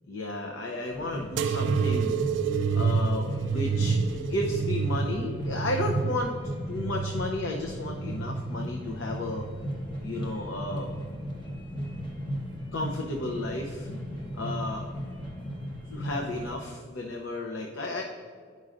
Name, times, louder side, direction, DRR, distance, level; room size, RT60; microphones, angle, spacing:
voice 1, 0.1-2.1 2.7-6.3 6.7-9.5 10.0-10.9 12.7-13.9 14.3-14.9 15.9-18.0, left 1 dB, 90° left, 1 dB, 0.7 m, -33 dB
sound 1, 0.9-16.5, equal, 25° left, 1.0 m, -36 dB
sound 2, 1.4-8.6 9.1-9.9 10.6-11.2 12.1-12.2, right 5 dB, 70° right, 0.3 m, -29 dB
10.5 x 5.4 x 2.5 m, 2.1 s
head